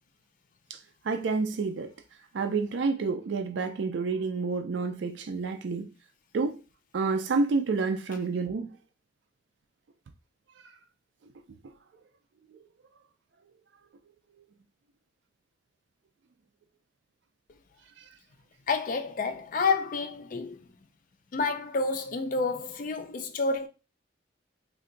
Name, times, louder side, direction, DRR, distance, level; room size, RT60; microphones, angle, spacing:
voice 1, 1.1-1.9 2.3-5.9 6.3-6.6 6.9-8.7, right 4 dB, 80° right, 0.4 m, -29 dB
voice 2, 18.7-20.7 21.3-23.7, left 4 dB, 45° left, 0.4 m, -29 dB
2.6 x 2.2 x 3.8 m
head